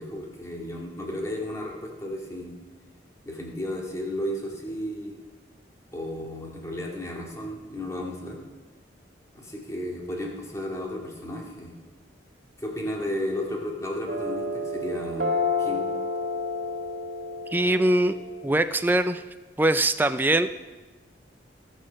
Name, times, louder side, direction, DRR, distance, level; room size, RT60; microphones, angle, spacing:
voice 1, 0.0-2.6 3.2-5.2 5.9-8.4 9.3-11.7 12.6-15.3 15.6-15.9, left 1 dB, 15° left, -2 dB, 2.1 m, -33 dB
sound 1, 14.1-19.1, left 3 dB, 50° right, 2.2 m, -30 dB
voice 2, 17.5-18.2 18.4-19.2 19.6-20.5, right 1 dB, 10° right, 10 dB, 0.3 m, -22 dB
18.0 x 6.5 x 6.3 m, 1.2 s
head